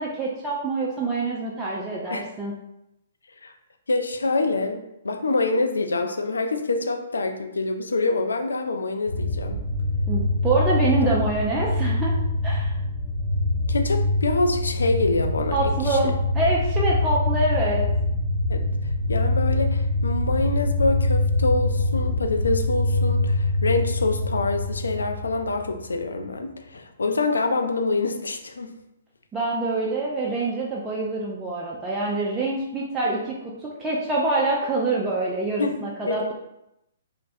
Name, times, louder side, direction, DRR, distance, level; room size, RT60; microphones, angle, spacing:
voice 1, 0.0-2.5 10.1-12.2 12.4-12.8 15.5-17.9 29.3-36.3, right 2 dB, 15° right, -5 dB, 0.4 m, -25 dB
voice 2, 3.9-9.6 13.7-16.0 18.5-18.6 19.1-28.7 35.6-35.8 36.1-36.3, left 3 dB, 70° left, 4 dB, 0.3 m, -26 dB
sound 1, 9.1-25.9, left 2 dB, 15° left, 1.2 m, -24 dB
3.2 x 2.0 x 2.5 m, 0.85 s
figure-of-eight pair, 120°, 0 cm